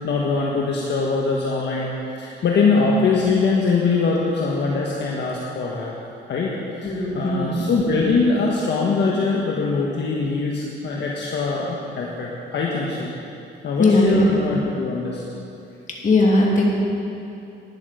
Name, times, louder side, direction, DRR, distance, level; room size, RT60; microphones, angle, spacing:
voice 1, 0.0-1.9 2.2-5.9 6.3-13.1 13.6-15.2, left 4 dB, 60° left, -3 dB, 1.4 m, -22 dB
voice 2, 6.8-7.6 13.8-14.3 16.0-16.6, left 2 dB, 40° left, -3 dB, 2.7 m, -18 dB
12.0 x 10.0 x 5.1 m, 2.7 s
cardioid pair, 90°, 20 cm